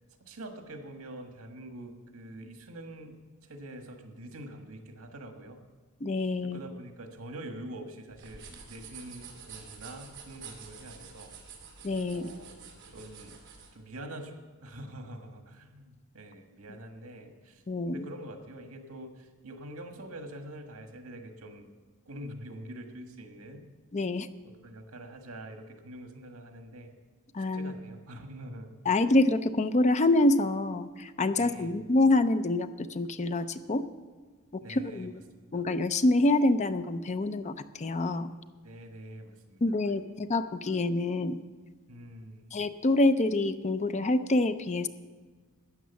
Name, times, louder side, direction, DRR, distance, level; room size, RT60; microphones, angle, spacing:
voice 1, 0.2-5.6 6.4-11.3 12.1-13.4 13.7-21.7 22.1-23.7 24.4-26.9 27.5-28.8 31.3-31.8 34.6-35.7 38.6-40.1 41.9-42.5, right 1 dB, 80° right, 5 dB, 1.6 m, -45 dB
voice 2, 6.0-6.6 11.8-12.3 17.7-18.0 23.9-24.3 27.3-27.7 28.9-33.8 34.5-35.1 35.5-38.3 39.6-41.4 42.5-44.9, left 2 dB, 30° left, 11 dB, 0.5 m, -26 dB
sound 1, 8.1-13.7, right 6 dB, 55° right, 2.5 m, -48 dB
12.5 x 9.3 x 7.0 m, 1.4 s
head